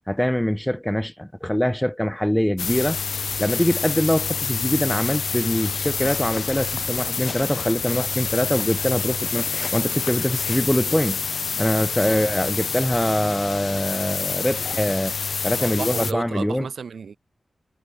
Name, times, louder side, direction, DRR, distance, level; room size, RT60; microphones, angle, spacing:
voice 1, 0.1-3.0 3.4-9.5 9.7-11.2 11.6-15.2 15.4-16.7, equal, 5° left, 0.4 m, -23 dB
sound 1, 2.6-16.1, left 5 dB, 70° left, 0.6 m, -28 dB
sound 2, 4.9-12.6, left 4 dB, 50° left, 1.5 m, -41 dB
voice 2, 15.6-17.2, right 6 dB, 80° right, 1.8 m, -33 dB
wide cardioid pair, 130°, 0 cm